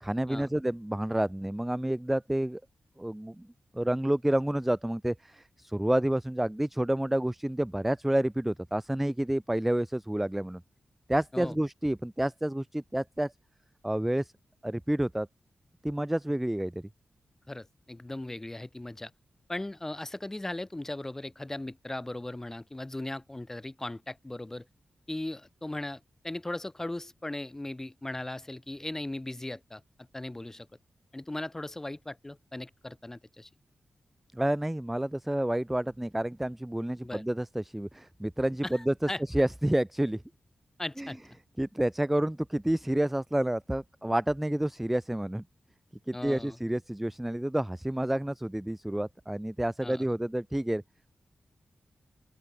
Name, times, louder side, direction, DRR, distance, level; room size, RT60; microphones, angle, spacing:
voice 1, 0.0-2.6 3.0-3.5 3.7-10.6 11.1-13.3 13.8-14.3 14.6-15.3 15.8-16.8 34.3-40.2 41.0-41.1 41.6-45.4 46.1-50.8, right 1 dB, 5° right, 0.3 m, -29 dB
voice 2, 17.5-19.1 19.5-24.6 25.1-29.8 30.1-30.7 31.1-33.5 37.0-37.2 38.6-39.2 40.8-41.2 46.1-46.6 49.8-50.1, left 1 dB, 15° left, 3.1 m, -38 dB
open air
wide cardioid pair, 180°, 3 cm